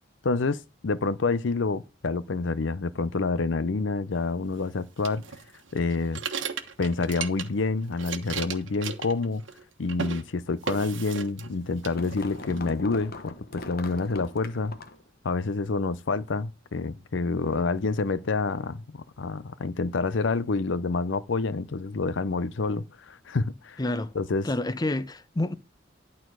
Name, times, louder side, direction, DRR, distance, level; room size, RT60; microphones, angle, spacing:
voice 1, 0.2-5.2 5.7-6.2 6.8-9.4 9.8-14.8 15.2-23.8 24.1-24.5, left 3 dB, 70° left, 0.6 m, -28 dB
sound 1, 5.0-7.7 7.9-9.6 9.9-10.2 10.7-11.5 11.8-12.6, right 6 dB, 80° right, 1.2 m, -35 dB
sound 2, 11.7-15.1, left 2 dB, 55° left, 1.1 m, -40 dB
voice 2, 23.8-24.1 24.4-25.5, left 2 dB, 20° left, 0.6 m, -28 dB
11.5 x 4.2 x 6.2 m
head